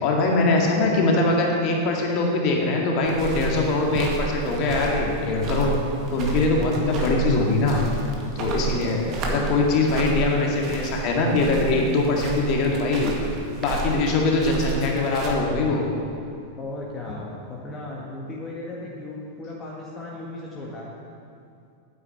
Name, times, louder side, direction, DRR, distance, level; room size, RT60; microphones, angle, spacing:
voice 1, 0.0-5.7 6.1-7.8 8.4-9.0 9.2-13.1 13.6-15.8, left 3 dB, 40° left, 0 dB, 2.2 m, -22 dB
sound 1, 3.0-15.3, right 5 dB, 35° right, 2.0 m, -31 dB
voice 2, 8.7-9.6 16.6-20.9, left 2 dB, 25° left, -4 dB, 1.8 m, -36 dB
9.5 x 9.1 x 7.9 m, 2.5 s
figure-of-eight pair, 90°, 0 cm